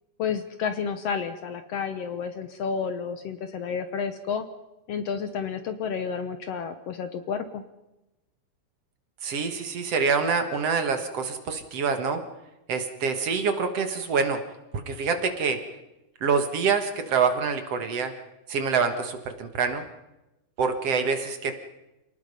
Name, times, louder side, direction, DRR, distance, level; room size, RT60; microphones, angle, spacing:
voice 1, 0.2-4.5 4.9-7.6, left 6 dB, 65° left, 9 dB, 1.8 m, -31 dB
voice 2, 9.2-12.2 12.7-14.4 14.7-15.6 16.2-18.1 18.5-19.8 20.6-21.5, right 5 dB, 55° right, 7 dB, 2.4 m, -26 dB
28.0 x 19.0 x 5.4 m, 0.96 s
omnidirectional pair, 3.5 m